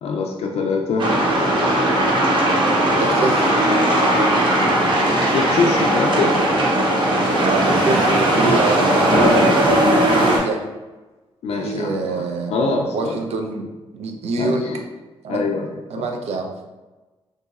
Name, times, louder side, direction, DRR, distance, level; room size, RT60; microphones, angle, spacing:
voice 1, 0.0-1.1 5.3-6.4 11.4-12.2 12.5-13.2 14.4-14.8 15.3-15.7 16.0-16.1, left 4 dB, 75° left, 0 dB, 0.4 m, -23 dB
sound 1, 1.0-10.4, right 1 dB, 50° right, 0.8 m, -17 dB
voice 2, 2.2-3.5 7.3-9.4 10.0-10.6 11.6-12.6 12.9-13.7 13.9-14.6 15.2-15.4 15.9-16.5, right 3 dB, 85° right, 3 dB, 0.5 m, -25 dB
3.9 x 2.6 x 2.4 m, 1.2 s
cardioid pair, 100°, 11 cm